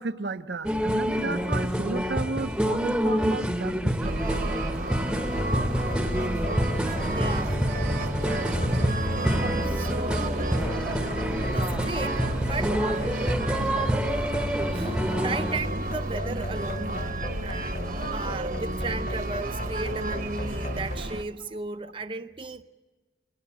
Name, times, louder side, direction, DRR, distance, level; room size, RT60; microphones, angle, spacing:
voice 1, 0.0-4.3, right 3 dB, 80° right, 0.7 m, -33 dB
sound 1, 0.6-15.6, equal, 5° right, 0.9 m, -28 dB
sound 2, 4.0-21.2, right 2 dB, 50° right, 1.0 m, -32 dB
sound 3, 5.4-21.0, equal, 55° left, 2.9 m, -34 dB
voice 2, 7.1-7.6 9.6-10.5 11.5-13.1 14.2-14.3 14.7-16.9 17.4-22.6, right 3 dB, 30° right, 0.6 m, -35 dB
22.5 x 18.5 x 7.3 m
head